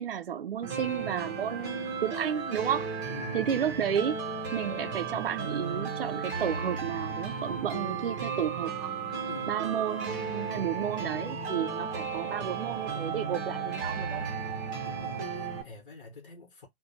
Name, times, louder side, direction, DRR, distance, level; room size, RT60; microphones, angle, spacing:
voice 1, 0.0-2.9 3.3-4.2 4.5-8.9 9.5-14.4, right 9 dB, 65° right, 0.5 m, -32 dB
sound 1, 0.6-15.6, right 5 dB, 20° right, 0.6 m, -34 dB
voice 2, 3.1-3.5 9.3-9.7 14.8-16.7, left 3 dB, 60° left, 1.1 m, -47 dB
2.7 x 2.2 x 4.0 m
figure-of-eight pair, 135°, 30 cm